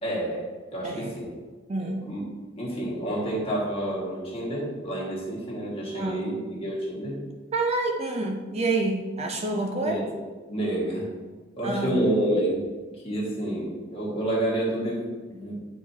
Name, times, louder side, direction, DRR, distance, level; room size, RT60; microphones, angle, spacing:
voice 1, 0.0-1.3 1.8-2.2 2.6-7.2 9.8-10.1 10.5-11.1 11.6-12.7 13.0-15.7, right 1 dB, 30° left, -5 dB, 1.8 m, -29 dB
voice 2, 1.7-2.0 5.9-6.3 7.5-10.0 11.6-12.0, right 2 dB, 35° right, 2 dB, 0.5 m, -28 dB
8.7 x 4.7 x 2.8 m, 1.4 s
head